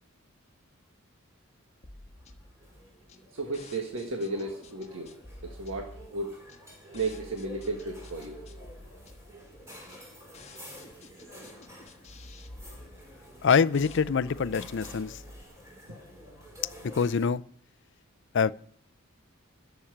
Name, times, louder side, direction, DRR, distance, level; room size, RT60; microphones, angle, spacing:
sound 1, 1.8-15.4, left 1 dB, 30° left, 1.3 m, -50 dB
sound 2, 2.2-17.3, equal, 15° right, 3.9 m, -49 dB
voice 1, 3.3-5.1 5.4-6.4 6.9-8.4, right 2 dB, 65° right, 1.7 m, -34 dB
voice 2, 13.4-15.2 16.9-17.4 18.3-18.5, left 6 dB, 55° left, 0.4 m, -24 dB
14.0 x 5.9 x 8.9 m
head